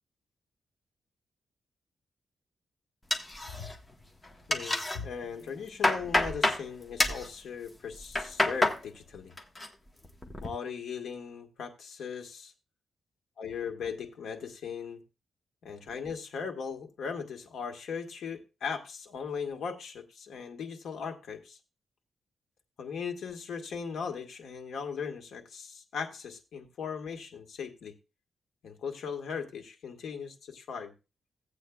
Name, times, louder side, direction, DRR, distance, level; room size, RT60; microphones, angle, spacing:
sound 1, 3.1-3.9 4.2-5.0 5.4-6.6 7.0-7.3 7.9-8.8 9.2-9.7 10.0-10.5, left 1 dB, 15° left, 1.2 m, -28 dB
voice 1, 4.5-9.3 10.4-12.5 13.4-15.0 15.6-21.6 22.8-27.9 28.6-30.9, left 6 dB, 80° left, 4 dB, 1.6 m, -38 dB
16.0 x 8.4 x 2.4 m, 0.28 s
wide cardioid pair, 145°, 0 cm